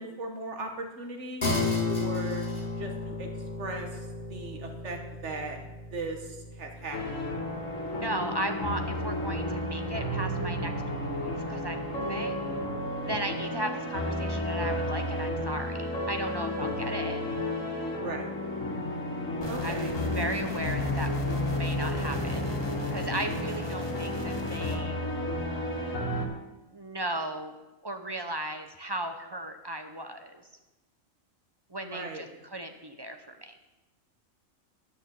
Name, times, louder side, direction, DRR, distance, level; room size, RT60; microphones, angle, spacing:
voice 1, 0.0-1.5 1.9-2.4 2.7-3.3 3.6-5.6 5.9-7.2 12.0-12.3 18.0-18.3 19.5-20.0 31.8-32.2, right 2 dB, 60° right, 4 dB, 1.7 m, -38 dB
sound 1, 1.4-11.1, left 3 dB, 35° left, 2.5 m, -35 dB
sound 2, 6.9-26.3, left 1 dB, 75° left, 1.9 m, -32 dB
voice 2, 7.9-12.5 13.0-17.2 19.6-19.8 20.2-21.1 21.4-22.5 22.9-25.0 26.7-27.5 27.8-30.5 31.7-33.6, right 1 dB, 25° right, 6 dB, 0.6 m, -36 dB
sound 3, 19.4-24.7, left 2 dB, 20° left, 1.1 m, -37 dB
10.5 x 6.4 x 7.0 m, 1.1 s
omnidirectional pair, 1.4 m